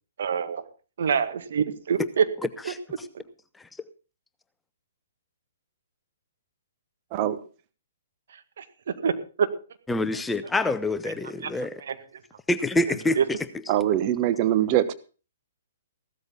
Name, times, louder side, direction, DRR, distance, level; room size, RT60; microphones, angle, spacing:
voice 1, 0.2-0.6 1.0-2.3 2.6-2.7 8.6-8.7 9.0-9.1 11.1-11.2 11.4-11.5 11.8-12.2 12.9-13.3, right 7 dB, 60° right, 9 dB, 1.9 m, -26 dB
voice 2, 9.9-11.1 11.5-11.7 12.5-13.2, left 2 dB, 10° left, 13 dB, 0.6 m, -25 dB
voice 3, 13.7-14.9, right 12 dB, 35° right, 13 dB, 1.2 m, -23 dB
15.5 x 13.0 x 3.9 m, 0.35 s
figure-of-eight pair, 125°, 0 cm